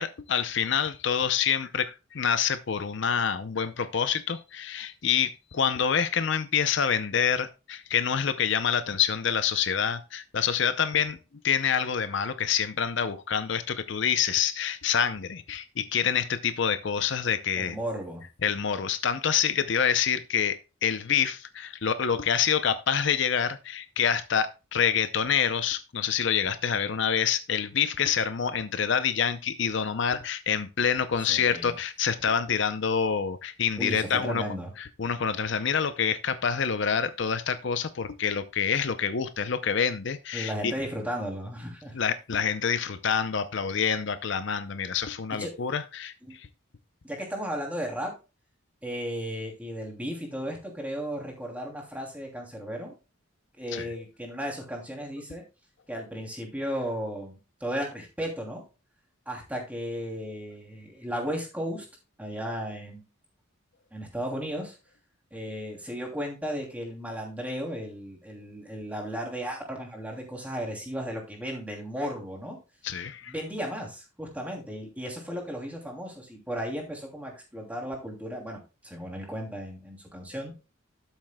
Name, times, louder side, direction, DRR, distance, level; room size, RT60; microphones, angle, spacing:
voice 1, 0.0-11.2 11.4-17.8 18.4-34.4 34.8-40.7 41.9-46.5 53.7-53.9 72.8-73.3, left 7 dB, 60° left, 11 dB, 0.6 m, -27 dB
voice 2, 17.6-18.2 31.3-31.8 33.8-34.7 40.3-41.9 45.4-45.5 46.3-46.4 47.0-48.1 48.8-52.9 53.6-55.4 55.9-58.6 59.3-61.9 62.2-63.0 63.9-64.8 65.3-72.6 73.3-80.5, equal, 5° right, 0 dB, 2.8 m, -35 dB
12.5 x 7.4 x 2.2 m, 0.30 s
head